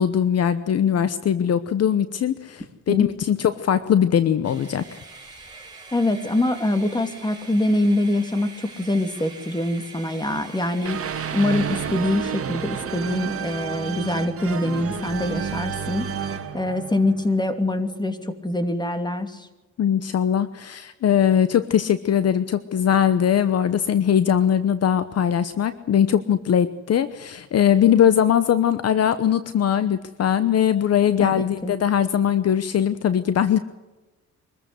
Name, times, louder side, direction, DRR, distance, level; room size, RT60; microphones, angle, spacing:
voice 1, 0.0-5.0 19.8-33.6, left 9 dB, 55° left, 13 dB, 1.0 m, -20 dB
sound 1, 4.4-12.5, right 3 dB, 15° right, 4.9 m, -44 dB
voice 2, 5.9-11.0 11.3-16.1 16.5-19.5 31.2-31.7, left 1 dB, 15° left, 8 dB, 2.8 m, -24 dB
sound 2, 10.8-17.8, right 7 dB, 50° right, 1.9 m, -31 dB
24.0 x 14.5 x 8.1 m, 1.1 s
cardioid pair, 90°, 30 cm